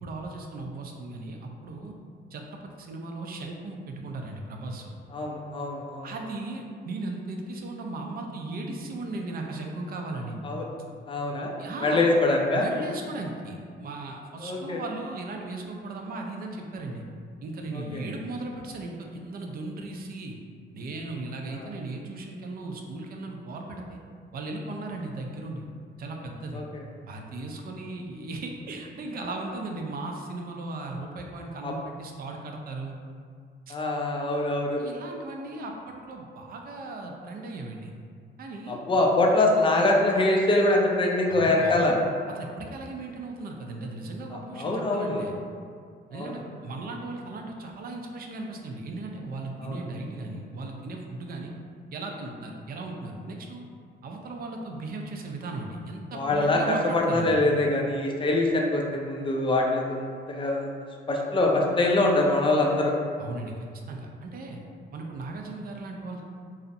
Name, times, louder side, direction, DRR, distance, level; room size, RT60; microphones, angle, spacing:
voice 1, 0.0-1.9 2.3-5.0 6.0-10.4 11.6-12.0 12.5-17.0 17.4-20.4 20.7-24.0 24.3-25.7 26.0-26.6 27.1-32.9 33.7-33.8 34.4-34.5 34.8-37.9 38.4-38.8 41.3-42.0 42.4-45.3 46.1-51.5 51.9-53.6 54.0-57.4 63.2-64.6 64.9-66.2, right 2 dB, 50° right, 2 dB, 0.4 m, -37 dB
voice 2, 5.1-6.1 10.4-10.6 11.1-11.5 11.8-12.7 14.4-14.8 17.7-18.0 21.5-21.6 26.5-26.6 31.6-31.7 33.7-34.8 38.7-42.0 44.5-45.2 46.1-46.4 49.6-49.8 56.1-60.7 61.1-62.9, left 2 dB, 25° left, 0 dB, 0.4 m, -24 dB
2.4 x 2.0 x 2.6 m, 2.2 s
cardioid pair, 90°, 20 cm